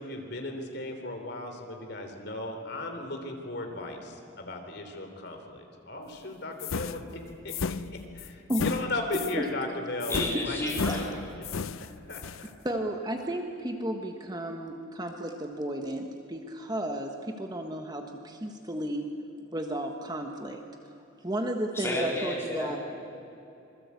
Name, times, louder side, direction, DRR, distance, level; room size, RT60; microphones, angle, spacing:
voice 1, 0.0-7.8 8.1-10.2 10.4-11.1 11.4-11.5 12.1-12.5, left 2 dB, 55° left, 4 dB, 3.5 m, -36 dB
sound 1, 6.6-9.4 10.0-12.5, left 5 dB, 90° left, 0.6 m, -34 dB
voice 2, 10.1-11.1 21.7-22.8, left 1 dB, 10° left, -4 dB, 4.1 m, -31 dB
voice 3, 12.6-19.1 19.5-20.6 21.2-22.8, right 1 dB, 20° right, 3 dB, 1.4 m, -33 dB
26.5 x 21.5 x 8.4 m, 2.8 s
head